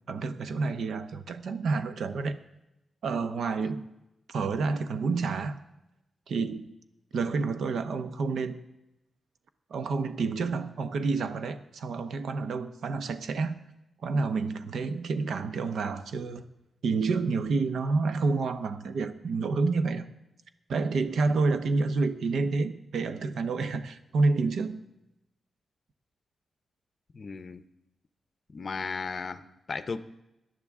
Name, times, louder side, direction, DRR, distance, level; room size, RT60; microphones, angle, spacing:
voice 1, 0.1-2.4 3.0-3.9 4.3-5.6 6.3-6.7 7.1-8.6 9.7-13.6 14.0-16.4 16.8-20.1 20.7-24.9, right 4 dB, 80° right, 10 dB, 0.9 m, -29 dB
voice 2, 27.1-27.6 28.5-30.0, left 4 dB, 40° left, 13 dB, 0.6 m, -36 dB
18.0 x 11.0 x 3.6 m, 0.91 s
wide cardioid pair, 150°, 0 cm